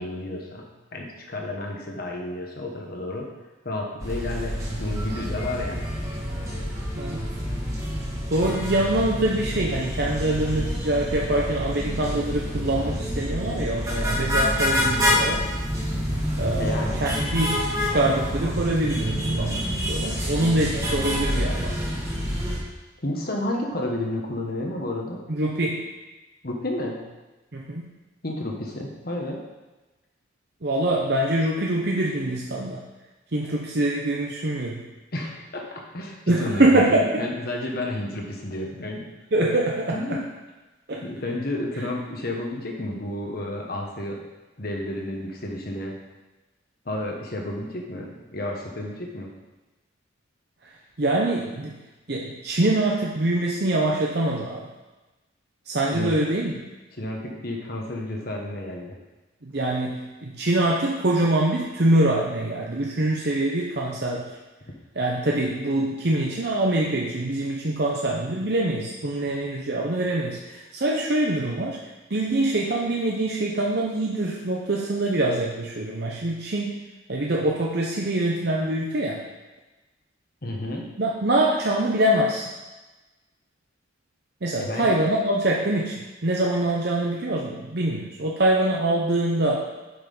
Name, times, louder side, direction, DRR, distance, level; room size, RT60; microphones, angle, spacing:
voice 1, 0.0-3.3 3.6-5.9 16.6-16.9 23.0-25.2 26.4-27.0 28.2-29.4 35.1-39.1 39.9-40.2 41.0-44.2 44.6-46.0 46.8-49.3 55.9-56.2 57.0-59.0 69.2-69.3 80.4-80.9 84.6-84.9, left 1 dB, 50° left, 0 dB, 1.4 m, -31 dB
sound 1, 4.0-22.6, equal, 15° right, 1.6 m, -27 dB
voice 2, 6.9-7.3 8.3-15.5 16.4-21.7 25.3-25.8 27.5-27.9 30.6-32.8 33.3-34.8 36.3-37.2 39.3-40.2 40.9-41.0 51.0-51.8 52.1-54.7 55.7-56.5 59.4-64.3 65.0-71.8 72.1-76.8 77.1-79.2 81.0-82.5 84.4-89.7, right 1 dB, 55° right, -2 dB, 0.8 m, -24 dB
8.3 x 5.7 x 5.5 m, 1.1 s
head